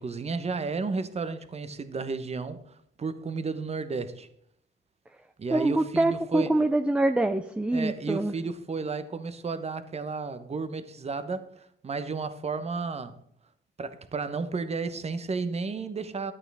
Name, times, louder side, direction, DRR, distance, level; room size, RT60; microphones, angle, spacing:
voice 1, 0.0-4.3 5.4-6.5 7.7-13.2 13.8-16.3, right 4 dB, 30° right, 0.9 m, -33 dB
voice 2, 5.5-8.3, right 2 dB, 5° right, 0.5 m, -25 dB
11.0 x 8.8 x 3.4 m
cardioid pair, 90°, 20 cm